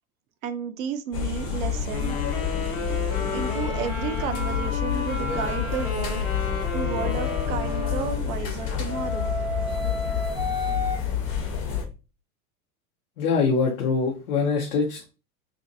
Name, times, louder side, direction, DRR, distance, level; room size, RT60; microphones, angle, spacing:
voice 1, 0.4-2.5 3.3-6.2 6.7-9.3, right 7 dB, 65° right, 9 dB, 0.6 m, -32 dB
sound 1, 1.1-11.9, left 8 dB, 60° left, 1.0 m, -29 dB
sound 2, 1.9-8.5, left 3 dB, 35° left, 0.9 m, -34 dB
sound 3, 3.1-8.1 8.8-11.0, left 1 dB, 10° right, 0.6 m, -34 dB
voice 2, 13.2-15.1, left 4 dB, 75° left, 0 dB, 0.8 m, -23 dB
2.6 x 2.5 x 2.6 m, 0.31 s
hypercardioid pair, 90°, 44 cm